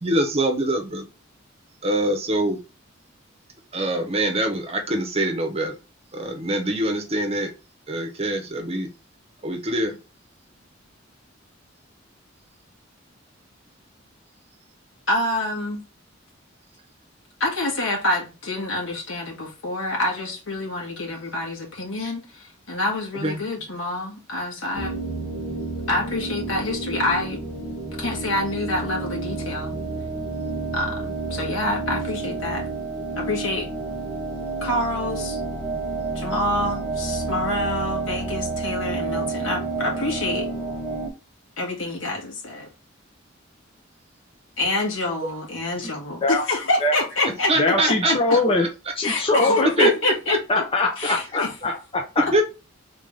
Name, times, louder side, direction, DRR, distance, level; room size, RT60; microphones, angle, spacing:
voice 1, 0.0-1.1 1.8-2.6 3.7-5.8 6.1-7.5 7.9-8.9 9.4-10.0 23.1-23.4 47.5-48.1 48.6-48.7 49.4-49.9 50.3-50.4 51.0-51.1 52.3-52.4, right 1 dB, 30° right, 0.9 m, -24 dB
voice 2, 15.1-15.8 17.4-24.9 25.9-27.4 28.0-29.7 30.7-32.7 33.2-33.7 34.6-35.4 36.1-40.5 41.6-42.7 44.6-48.2 49.0-50.4 51.0-51.5, left 2 dB, 80° left, 2.0 m, -27 dB
sound 1, 24.7-41.1, right 3 dB, ahead, 1.5 m, -30 dB
voice 3, 47.6-48.7 49.0-49.9 50.5-52.4, left 2 dB, 30° left, 0.7 m, -22 dB
3.7 x 3.6 x 3.6 m
head